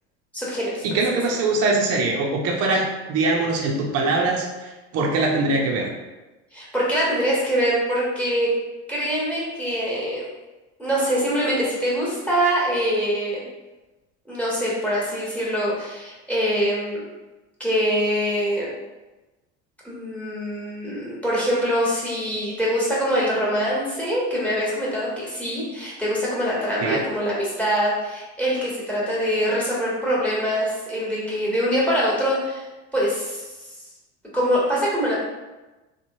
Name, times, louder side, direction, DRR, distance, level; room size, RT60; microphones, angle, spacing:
voice 1, 0.3-1.0 6.5-8.5 8.9-10.3 10.8-13.4 14.3-17.0 17.6-18.7 19.8-32.6 32.9-33.4 34.3-35.2, equal, 5° left, -6 dB, 1.3 m, -24 dB
voice 2, 0.8-5.9 26.8-27.0, right 3 dB, 45° right, 0 dB, 0.6 m, -22 dB
2.9 x 2.2 x 2.7 m, 1.1 s
hypercardioid pair, 80°, 36 cm